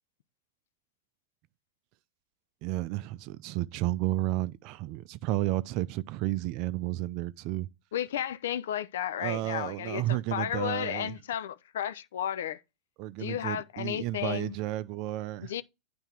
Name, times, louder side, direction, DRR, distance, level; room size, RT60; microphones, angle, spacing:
voice 1, 2.6-7.7 9.2-11.1 13.0-15.5, right 16 dB, 50° right, 0.5 m, -32 dB
voice 2, 7.9-12.6 13.2-14.6 15.4-15.6, left 10 dB, 75° left, 0.5 m, -33 dB
9.0 x 3.5 x 4.3 m
hypercardioid pair, 110°, 0 cm